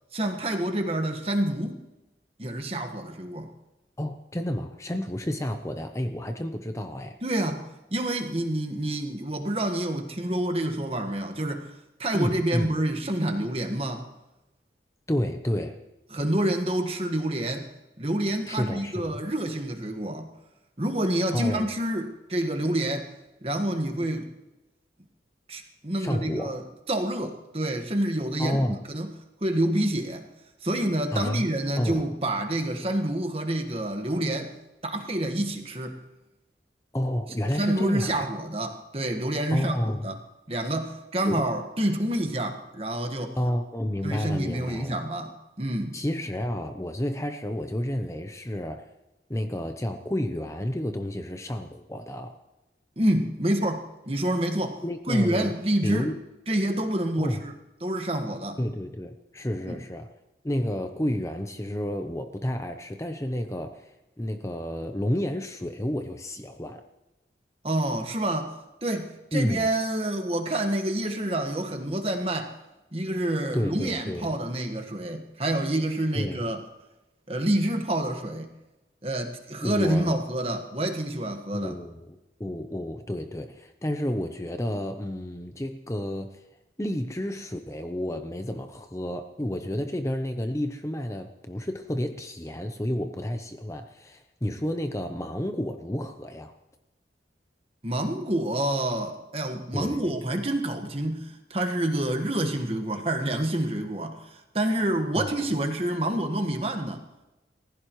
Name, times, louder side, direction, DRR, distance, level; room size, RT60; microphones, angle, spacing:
voice 1, 0.1-1.8 2.4-3.5 7.2-11.7 12.0-14.1 16.1-17.7 18.0-20.3 20.8-23.1 23.4-24.3 25.5-26.6 26.9-28.6 28.9-29.1 29.4-30.3 30.6-34.5 34.8-36.0 37.5-40.2 40.5-43.4 44.0-46.0 53.0-54.8 55.1-56.1 56.5-57.5 57.8-58.6 59.7-59.8 67.6-72.6 72.9-76.6 77.3-78.5 79.0-81.8 97.8-107.0, right 1 dB, 35° right, 4 dB, 1.6 m, -28 dB
voice 2, 4.0-7.2 12.1-12.7 15.1-15.8 18.5-19.2 21.3-21.7 26.0-26.5 28.4-28.9 31.1-31.5 31.8-32.1 36.9-38.3 39.5-40.1 41.2-41.4 43.4-45.0 45.9-48.9 49.3-52.4 54.8-55.5 55.8-56.2 57.2-57.4 58.6-60.1 60.4-66.8 69.3-69.7 73.5-74.3 76.1-76.4 79.6-80.2 81.5-86.4 86.8-96.5 99.7-100.0 105.1-105.5, left 1 dB, 15° left, 6 dB, 0.7 m, -30 dB
29.0 x 15.5 x 3.2 m, 1.0 s
head